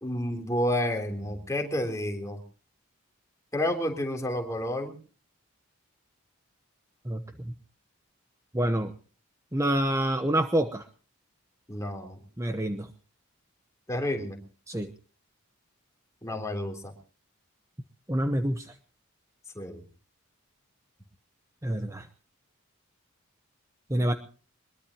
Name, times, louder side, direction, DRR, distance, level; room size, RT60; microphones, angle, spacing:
voice 1, 0.0-2.4 3.5-5.0 11.7-12.2 13.9-14.4 16.2-16.9 19.6-19.8, left 1 dB, 15° left, 3 dB, 3.3 m, -30 dB
voice 2, 8.5-8.9 9.5-10.8 12.4-12.9 14.7-14.9 18.1-18.7 21.6-22.1 23.9-24.1, right 1 dB, 15° right, 8 dB, 0.9 m, -27 dB
22.5 x 21.5 x 2.9 m, 0.40 s
head